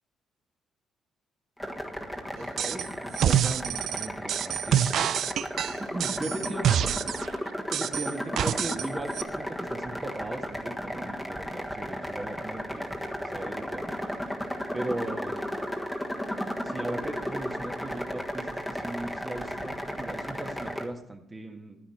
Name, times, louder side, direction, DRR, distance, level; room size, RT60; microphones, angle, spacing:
sound 1, 1.6-20.8, equal, ahead, 1.4 m, -34 dB
voice 1, 2.4-4.8 5.6-6.6 7.7-14.1 14.7-15.6 16.6-21.8, right 2 dB, 25° right, 3 dB, 1.6 m, -38 dB
sound 2, 2.6-2.9 3.1-7.3 7.7-8.9 9.1-9.2, right 10 dB, 70° right, 0.4 m, -26 dB
11.0 x 10.0 x 4.3 m, 0.75 s
cardioid pair, 90°, 0 cm